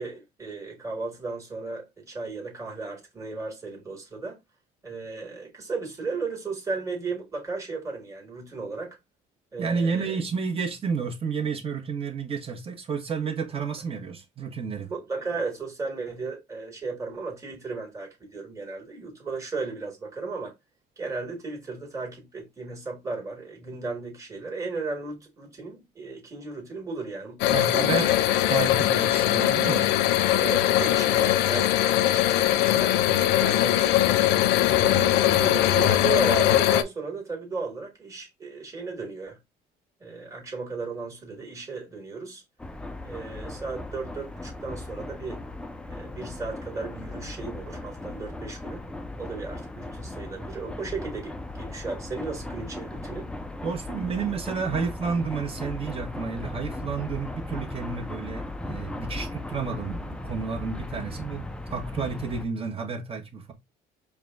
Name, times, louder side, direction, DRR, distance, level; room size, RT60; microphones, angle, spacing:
voice 1, 0.0-4.4 4.8-9.0 9.5-10.2 14.9-20.5 21.0-27.8 30.4-34.1 34.6-39.4 40.0-42.4 43.0-45.4 45.9-48.8 49.2-53.3, right 4 dB, 15° right, 1.7 m, -35 dB
voice 2, 9.6-14.9 27.5-28.2 28.5-29.9 53.6-63.5, right 5 dB, 35° right, 1.1 m, -31 dB
sound 1, 27.4-36.8, left 13 dB, 90° left, 0.4 m, -21 dB
sound 2, 42.6-62.5, left 2 dB, 5° left, 0.4 m, -37 dB
4.8 x 2.3 x 3.5 m
cardioid pair, 110°, 17 cm